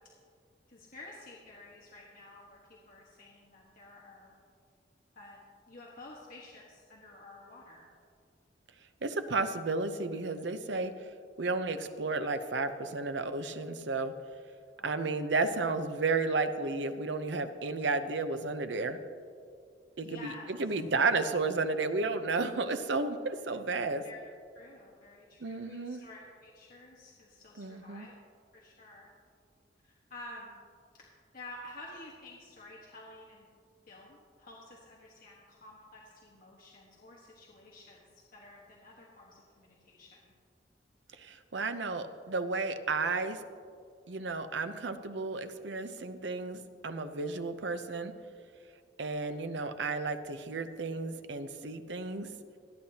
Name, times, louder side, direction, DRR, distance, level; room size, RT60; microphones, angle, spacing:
voice 1, 0.7-4.4 5.1-5.4 5.7-7.9 14.8-15.2 20.0-20.6 24.0-24.2 24.5-28.2 28.5-29.1 29.8-30.6 30.9-31.0 31.3-33.5 33.9-40.3 47.2-47.5 49.0-49.3, left 2 dB, 50° left, -4 dB, 1.4 m, -51 dB
voice 2, 9.0-10.9 11.4-14.1 14.8-19.0 20.0-24.0 25.4-26.0 27.6-28.1 41.2-43.4 44.1-48.1 49.0-52.3, right 3 dB, 85° right, 9 dB, 0.8 m, -32 dB
27.5 x 9.7 x 2.9 m, 2.3 s
head